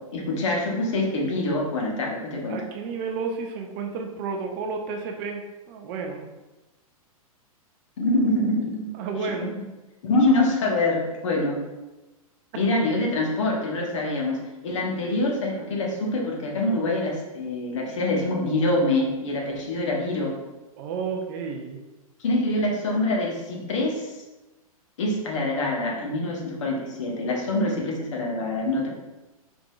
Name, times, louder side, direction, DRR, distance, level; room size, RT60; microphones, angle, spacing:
voice 1, 0.1-2.6 8.0-8.9 10.0-11.6 12.6-20.3 22.2-24.1 25.0-28.9, left 2 dB, 55° left, -1 dB, 1.1 m, -25 dB
voice 2, 2.5-6.3 8.9-9.6 20.8-21.8, right 5 dB, 30° right, 3 dB, 0.4 m, -31 dB
4.9 x 3.5 x 2.3 m, 1.1 s
figure-of-eight pair, 105°, 19 cm